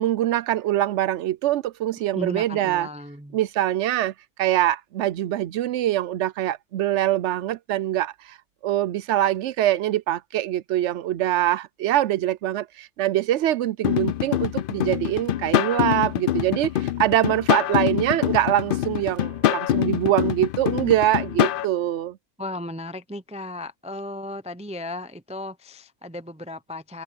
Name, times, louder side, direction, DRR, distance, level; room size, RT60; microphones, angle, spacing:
voice 1, 0.0-2.9 3.3-4.1 4.4-8.4 8.6-22.2, right 13 dB, 85° right, 0.9 m, -24 dB
voice 2, 2.1-3.4 22.4-27.0, left 1 dB, 10° right, 0.3 m, -35 dB
sound 1, 13.8-21.7, left 11 dB, 60° left, 0.6 m, -24 dB
omnidirectional pair, 1.2 m